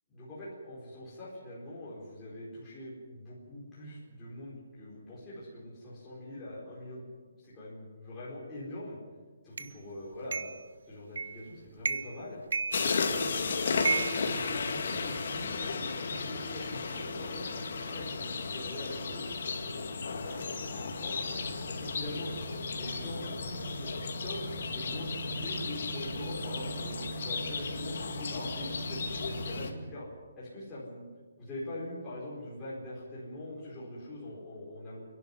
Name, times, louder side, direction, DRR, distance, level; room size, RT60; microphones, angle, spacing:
voice 1, 0.1-7.0 7.4-9.0 9.4-10.4 10.9-12.4 12.8-17.5 17.8-21.1 21.7-22.3 22.7-30.1 30.4-31.0 31.5-35.0, left 1 dB, 10° left, -10 dB, 4.5 m, -43 dB
sound 1, 9.6-9.7 10.3-10.6 11.2-11.5 11.8-12.2 12.5-13.3 13.8-15.1, right 5 dB, 70° right, 1.1 m, -33 dB
sound 2, 12.7-29.7, left 4 dB, 50° left, 2.3 m, -34 dB
29.5 x 11.5 x 9.7 m, 1.5 s
hypercardioid pair, 175°, 0 cm